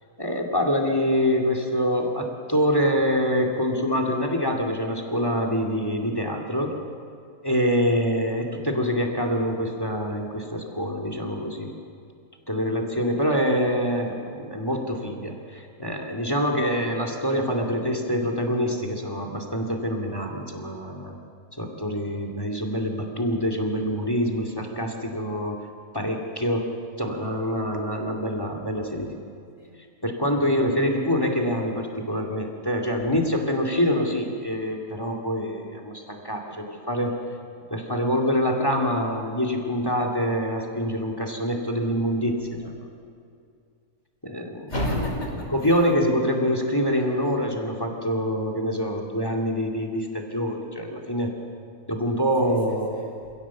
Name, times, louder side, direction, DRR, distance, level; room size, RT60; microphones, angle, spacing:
voice 1, 0.2-6.7 7.4-11.7 12.5-21.2 21.6-25.6 25.9-26.7 27.0-29.1 30.0-37.1 37.7-42.7 44.2-44.7 45.5-51.3 51.9-53.0, equal, 15° left, 3 dB, 2.4 m, -25 dB
voice 2, 29.3-29.8 44.7-45.7 46.9-47.3 52.4-53.1, left 1 dB, 50° left, -1 dB, 5.4 m, -32 dB
27.0 x 17.0 x 7.2 m, 2.4 s
omnidirectional pair, 1.5 m